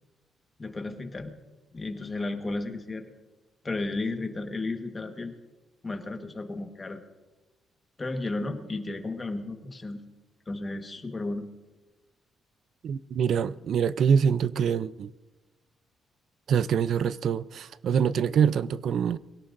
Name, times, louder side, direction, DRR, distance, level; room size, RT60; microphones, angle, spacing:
voice 1, 0.6-1.3 1.7-3.1 3.6-5.3 5.8-7.0 8.0-10.0 10.5-11.5, left 2 dB, 20° left, 1.3 m, -33 dB
voice 2, 12.8-15.1 16.5-19.2, right 7 dB, 60° right, 0.4 m, -25 dB
23.5 x 17.0 x 2.6 m
cardioid pair, 145°, 0 cm